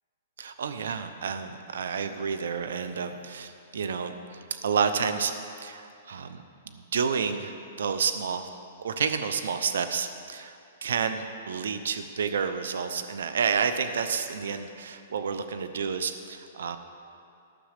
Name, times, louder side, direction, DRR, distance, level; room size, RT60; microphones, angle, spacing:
voice 1, 0.4-6.4 6.7-8.5 8.8-16.8, right 6 dB, 80° right, 9 dB, 0.7 m, -30 dB
13.5 x 6.1 x 6.6 m, 2.6 s
hypercardioid pair, 150°, 0 cm